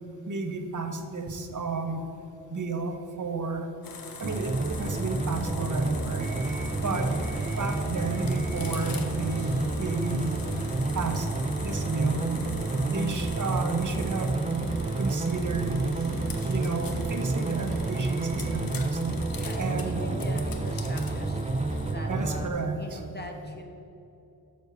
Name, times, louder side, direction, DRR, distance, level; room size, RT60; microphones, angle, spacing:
voice 1, 0.3-2.1 2.5-3.7 4.2-6.3 6.8-7.1 7.6-10.5 10.9-11.3 11.6-12.3 12.8-14.4 15.0-15.9 16.5-19.0 19.6-20.0 22.1-23.0, right 3 dB, 60° right, 5 dB, 1.0 m, -32 dB
sound 1, 3.8-21.9, left 4 dB, 75° left, 0.8 m, -43 dB
sound 2, 4.2-22.5, right 3 dB, 20° right, 0.6 m, -29 dB
sound 3, 6.2-18.7, right 2 dB, 80° right, 1.1 m, -45 dB
voice 2, 6.8-7.5 13.0-13.3 19.4-21.4 21.9-23.6, left 1 dB, 30° left, 2 dB, 1.4 m, -42 dB
6.7 x 5.2 x 6.6 m, 2.9 s
cardioid pair, 45°, 35 cm